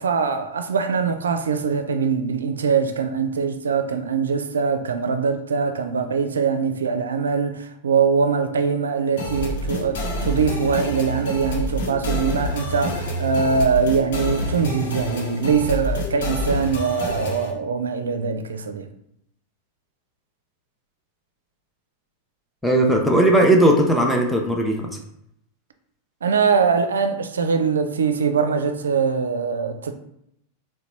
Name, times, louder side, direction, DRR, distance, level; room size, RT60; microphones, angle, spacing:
voice 1, 0.0-18.9 26.2-29.9, right 5 dB, 70° right, 0.4 m, -22 dB
sound 1, 9.2-17.5, equal, 55° left, 0.8 m, -27 dB
voice 2, 22.6-24.9, right 1 dB, ahead, 0.6 m, -17 dB
3.9 x 2.2 x 4.3 m
figure-of-eight pair, 90°, 0 cm